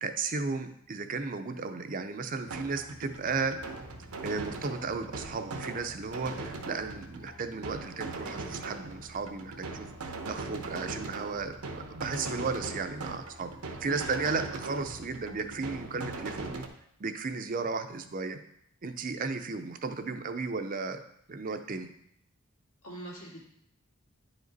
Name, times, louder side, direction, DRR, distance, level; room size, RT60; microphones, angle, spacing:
voice 1, 0.0-3.6 4.2-13.5 13.8-16.7 17.0-18.4 18.8-21.0 21.3-21.9, right 4 dB, 40° right, 8 dB, 0.5 m, -34 dB
sound 1, 2.5-16.7, right 3 dB, 85° right, 0.9 m, -40 dB
voice 2, 22.8-23.4, equal, 80° left, -3 dB, 2.3 m, -42 dB
9.9 x 5.0 x 4.0 m, 0.72 s
head